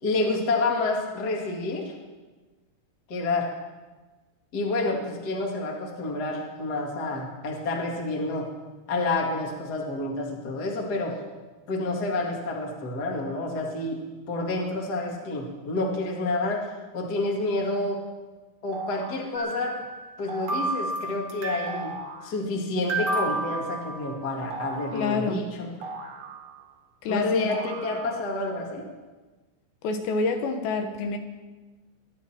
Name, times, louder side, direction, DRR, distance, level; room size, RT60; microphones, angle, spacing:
voice 1, 0.0-1.9 3.1-3.5 4.5-8.5 8.9-11.2 11.7-18.0 18.6-19.8 20.2-25.7 27.1-28.9, left 2 dB, 55° left, 0 dB, 1.1 m, -29 dB
sound 1, 18.7-19.3 20.3-20.8 21.7-22.3 23.0-23.6 24.5-25.2 25.8-26.8 27.5-28.3, right 3 dB, 90° right, 4.3 m, -38 dB
sound 2, 19.3-20.2 20.5-21.9 22.9-24.5, right 2 dB, 50° right, 2.1 m, -31 dB
voice 2, 24.9-25.4 27.0-27.6 29.8-31.2, left 4 dB, 75° left, 5 dB, 3.0 m, -27 dB
23.0 x 10.5 x 4.4 m, 1.2 s
omnidirectional pair, 5.5 m